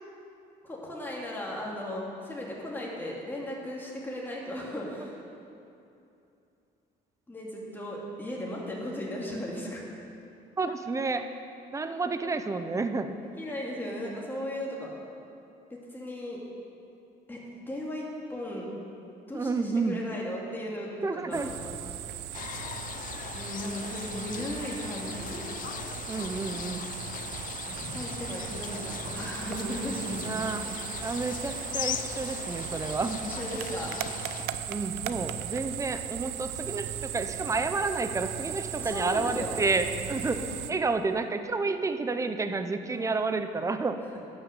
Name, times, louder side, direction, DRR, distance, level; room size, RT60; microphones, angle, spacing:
voice 1, 0.6-5.2 7.3-9.8 12.2-12.3 13.4-14.9 15.7-16.4 17.3-17.4 17.7-18.7 19.3-21.6 23.3-25.4 27.7-30.4 33.2-34.0 38.8-39.5 40.4-40.6 42.9-43.1, left 1 dB, 10° left, -4 dB, 2.3 m, -36 dB
voice 2, 10.6-11.3 11.7-13.2 19.3-20.0 21.0-21.5 26.1-26.9 30.2-30.7 31.0-33.2 34.7-40.4 40.7-44.0, right 3 dB, 20° right, 9 dB, 0.6 m, -30 dB
sound 1, 21.3-40.7, right 11 dB, 90° right, 0.5 m, -37 dB
sound 2, 22.3-34.5, left 10 dB, 55° left, 0.4 m, -39 dB
11.0 x 6.4 x 6.8 m, 2.7 s
cardioid pair, 110°, 17 cm